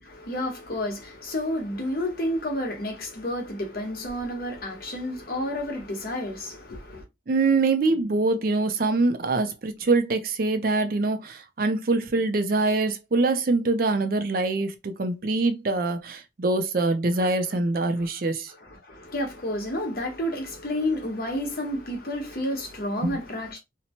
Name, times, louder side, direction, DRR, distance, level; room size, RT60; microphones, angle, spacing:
voice 1, 0.0-7.0 17.2-17.3 18.0-18.1 18.5-23.6, left 1 dB, 55° left, 1.0 m, -30 dB
voice 2, 7.3-18.5 23.0-23.1, right 3 dB, 50° right, 0.4 m, -24 dB
2.8 x 2.1 x 2.8 m
head